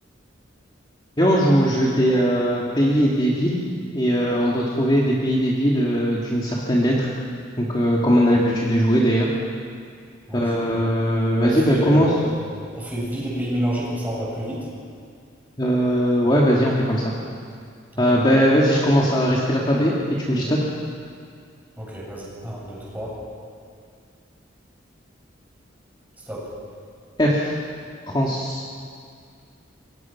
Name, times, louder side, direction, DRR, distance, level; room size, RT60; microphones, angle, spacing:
voice 1, 1.2-3.6 3.9-7.1 7.6-9.3 10.3-12.1 15.6-17.1 18.0-19.9 20.2-20.6 27.2-27.5 28.1-28.6, equal, 25° left, -4 dB, 2.4 m, -19 dB
voice 2, 10.3-10.6 11.4-12.4 12.7-14.7 17.9-18.2 21.8-23.2 26.3-26.5, equal, 10° right, -5 dB, 8.0 m, -29 dB
27.5 x 23.0 x 6.0 m, 2.2 s
head